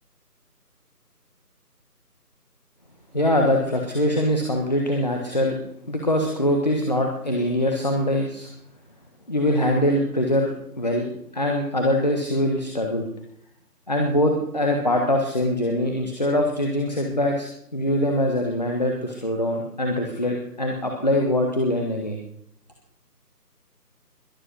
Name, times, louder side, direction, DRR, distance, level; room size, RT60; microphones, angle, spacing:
voice 1, 3.1-5.6 5.9-8.5 9.3-10.5 10.8-13.1 13.9-22.2, left 1 dB, 25° left, 2 dB, 1.4 m, -23 dB
22.0 x 8.0 x 6.2 m, 0.68 s
figure-of-eight pair, 175°, 48 cm